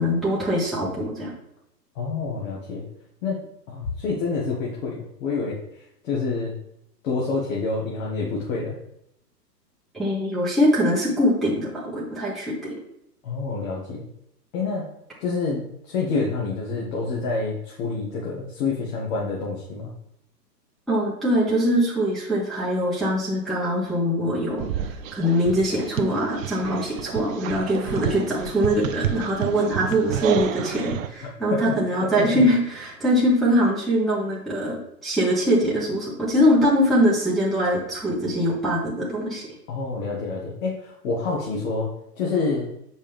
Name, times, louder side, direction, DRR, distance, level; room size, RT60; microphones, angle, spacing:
voice 1, 0.0-1.3 9.9-12.8 20.9-24.7 25.1-39.5, equal, ahead, -7 dB, 1.0 m, -22 dB
voice 2, 2.0-2.8 3.2-6.6 7.0-8.8 13.2-14.1 14.5-14.9 15.2-19.9 31.2-32.4 39.7-42.7, left 4 dB, 55° left, -4 dB, 1.9 m, -28 dB
sound 1, 24.6-31.1, right 9 dB, 55° right, 0.6 m, -30 dB
7.3 x 5.3 x 3.4 m, 0.77 s
hypercardioid pair, 125°, 49 cm